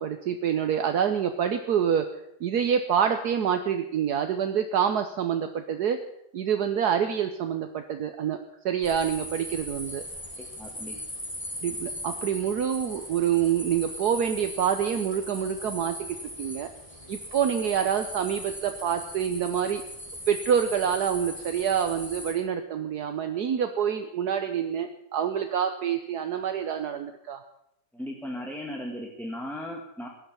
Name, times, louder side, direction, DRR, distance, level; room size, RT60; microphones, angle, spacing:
voice 1, 0.0-6.0 6.3-8.4 8.6-10.0 11.6-16.7 17.1-19.8 20.3-27.4, right 8 dB, 70° right, 7 dB, 1.4 m, -27 dB
sound 1, 8.8-22.3, equal, 20° left, 4.2 m, -39 dB
voice 2, 10.4-11.0 27.9-30.1, left 1 dB, ahead, 0 dB, 1.7 m, -37 dB
17.5 x 11.5 x 6.9 m, 0.77 s
omnidirectional pair, 1.8 m